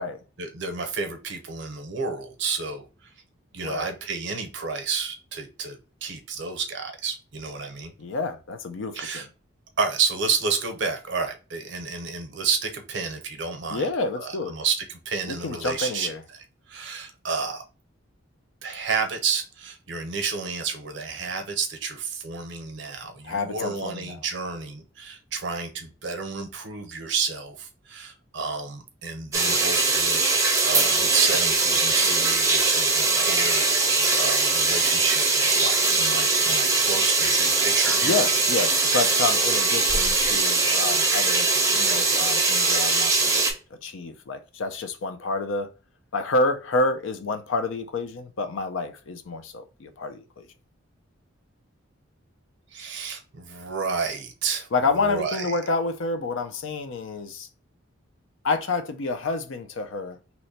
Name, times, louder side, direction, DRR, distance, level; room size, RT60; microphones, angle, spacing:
voice 1, 0.4-3.1 3.5-7.9 8.9-9.3 9.8-13.9 14.2-16.1 16.7-17.6 18.6-33.9 34.2-38.2 52.7-54.7 55.0-55.6, right 5 dB, 60° right, 0.6 m, -30 dB
voice 2, 8.0-9.2 13.7-14.6 15.3-16.2 23.2-24.2 38.0-41.5 41.8-43.4 43.8-45.7 46.1-50.5 54.7-57.5 58.4-60.2, left 3 dB, 70° left, 0.5 m, -28 dB
sound 1, 29.3-43.5, right 3 dB, 15° right, 0.5 m, -21 dB
2.9 x 2.1 x 4.1 m
head